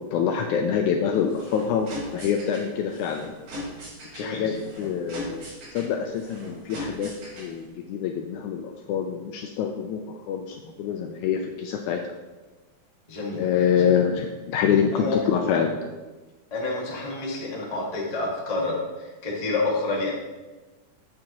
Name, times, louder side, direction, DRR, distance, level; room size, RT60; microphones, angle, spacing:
voice 1, 0.0-3.3 4.1-5.5 5.7-7.1 7.4-12.0 13.4-15.8, left 7 dB, 80° left, 4 dB, 1.7 m, -26 dB
sound 1, 1.1-7.7, left 1 dB, 85° right, 3.6 m, -39 dB
voice 2, 4.1-4.6 13.1-13.4 13.8-13.9 14.9-15.6 16.5-20.1, left 3 dB, 40° left, -4 dB, 0.5 m, -29 dB
8.4 x 7.6 x 2.9 m, 1.2 s
omnidirectional pair, 3.8 m